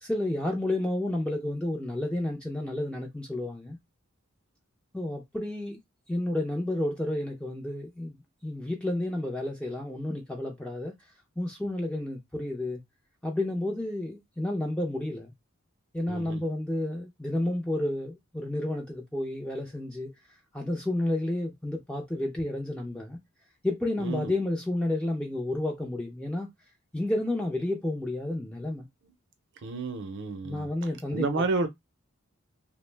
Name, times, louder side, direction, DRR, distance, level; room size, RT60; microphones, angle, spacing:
voice 1, 0.0-3.8 4.9-5.8 6.1-10.9 11.4-12.8 13.2-15.3 15.9-20.1 20.5-23.2 23.6-26.5 26.9-28.9 30.4-31.4, left 1 dB, 5° left, 0.4 m, -31 dB
voice 2, 16.1-16.4 24.0-24.3 29.6-30.7 31.1-31.7, right 3 dB, 60° right, 0.5 m, -30 dB
2.4 x 2.0 x 3.2 m
head